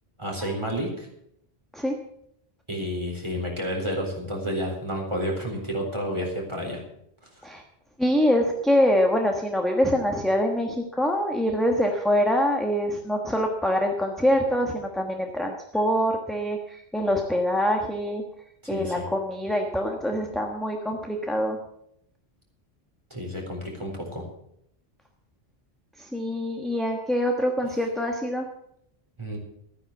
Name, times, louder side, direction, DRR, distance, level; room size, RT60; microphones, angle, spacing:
voice 1, 0.2-1.1 2.7-6.8 18.7-19.0 23.1-24.2 29.2-29.4, equal, 25° right, 0 dB, 3.9 m, -30 dB
voice 2, 8.0-18.2 18.7-21.6 26.0-28.5, equal, ahead, 2 dB, 1.3 m, -25 dB
13.0 x 9.9 x 7.2 m, 0.74 s
omnidirectional pair, 1.1 m